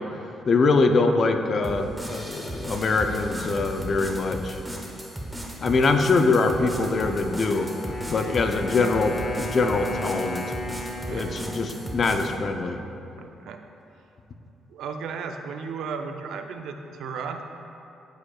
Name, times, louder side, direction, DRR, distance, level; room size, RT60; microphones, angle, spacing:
voice 1, 0.5-4.6 5.6-7.7 8.1-10.4 11.1-12.8, left 3 dB, 45° left, 6 dB, 0.5 m, -23 dB
sound 1, 1.6-12.4, right 1 dB, 5° right, 1.0 m, -36 dB
Wind instrument woodwind instrument, 6.9-12.9, left 1 dB, 30° left, 0.9 m, -36 dB
voice 2, 13.2-13.6 14.7-17.4, right 5 dB, 80° right, 6 dB, 0.5 m, -35 dB
12.5 x 5.0 x 2.3 m, 2.7 s
cardioid pair, 90°, 0 cm